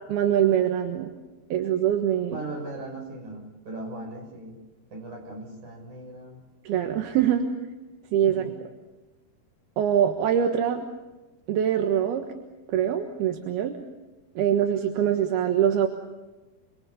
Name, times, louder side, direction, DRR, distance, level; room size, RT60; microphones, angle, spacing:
voice 1, 0.1-1.1 1.5-2.4 6.6-7.5 8.1-8.5 9.8-10.9 11.5-12.3 12.7-13.8 14.4-15.9, right 9 dB, 80° right, 4 dB, 3.4 m, -23 dB
voice 2, 2.3-4.6 4.9-6.4 8.2-8.6, right 2 dB, 50° right, 2 dB, 7.8 m, -38 dB
29.5 x 22.5 x 7.2 m, 1.1 s
omnidirectional pair, 4.6 m